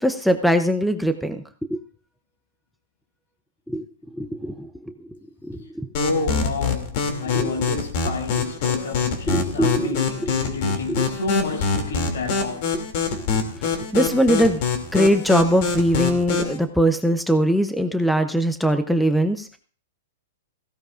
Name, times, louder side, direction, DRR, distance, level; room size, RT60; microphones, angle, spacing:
voice 1, 0.0-1.4 1.7-1.8 3.7-3.8 4.2-4.7 5.4-5.9 7.3-7.6 9.3-9.9 10.2-10.3 10.9-11.1 13.1-13.2 13.9-14.6 14.9-19.6, equal, ahead, 0.6 m, -21 dB
voice 2, 5.9-12.8, left 3 dB, 80° left, 6.4 m, -30 dB
sound 1, 5.9-16.6, left 5 dB, 45° left, 2.6 m, -25 dB
17.5 x 16.0 x 2.5 m
hypercardioid pair, 160°, 0 cm